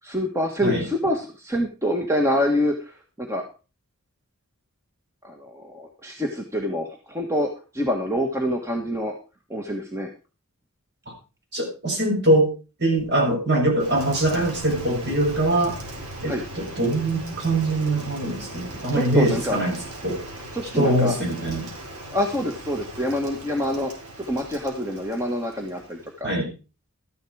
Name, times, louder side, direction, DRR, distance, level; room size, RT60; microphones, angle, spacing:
voice 1, 0.0-3.4 5.2-9.1 9.5-10.1 16.2-16.4 18.9-19.6 20.5-21.1 22.1-23.9 24.2-26.3, equal, 15° right, 2 dB, 1.5 m, -26 dB
voice 2, 11.5-12.5 12.8-15.8 16.2-20.2 20.7-21.7 26.2-26.5, right 1 dB, 50° right, 0 dB, 6.5 m, -23 dB
Rain, 13.8-26.2, right 1 dB, 80° right, 4.2 m, -38 dB
13.5 x 10.5 x 4.8 m, 0.33 s
head